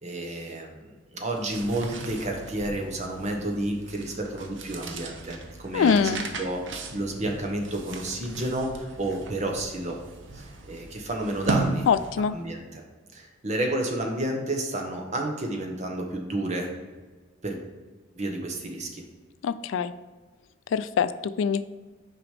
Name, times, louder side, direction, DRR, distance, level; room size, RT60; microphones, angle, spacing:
voice 1, 0.0-6.0 6.4-10.0 10.3-11.9 12.3-12.8 13.1-16.7 17.4-17.6 18.1-19.0, right 1 dB, 35° right, 2 dB, 1.1 m, -31 dB
sound 1, 1.2-12.4, right 3 dB, 65° right, 0.8 m, -37 dB
voice 2, 5.7-6.2 11.9-12.3 19.4-19.9 20.7-21.6, left 6 dB, 70° left, 13 dB, 0.3 m, -23 dB
6.3 x 5.0 x 5.0 m, 1.3 s
head